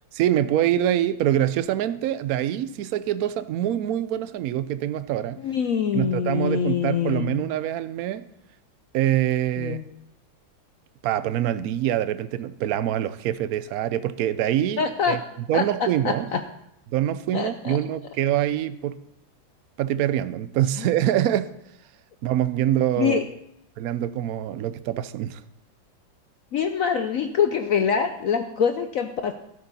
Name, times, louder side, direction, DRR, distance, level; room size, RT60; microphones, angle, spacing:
voice 1, 0.1-5.4 5.9-8.3 8.9-9.8 11.0-15.2 15.5-16.3 16.9-19.0 19.8-21.5 22.2-23.2 23.8-25.4, right 12 dB, 75° right, 0.8 m, -25 dB
voice 2, 5.4-7.4 9.6-9.9 14.8-15.2 15.5-15.6 16.0-16.4 17.3-17.8 20.8-20.9 23.0-23.2 26.5-29.3, left 7 dB, 70° left, 0.8 m, -24 dB
14.0 x 12.5 x 4.1 m
omnidirectional pair, 2.1 m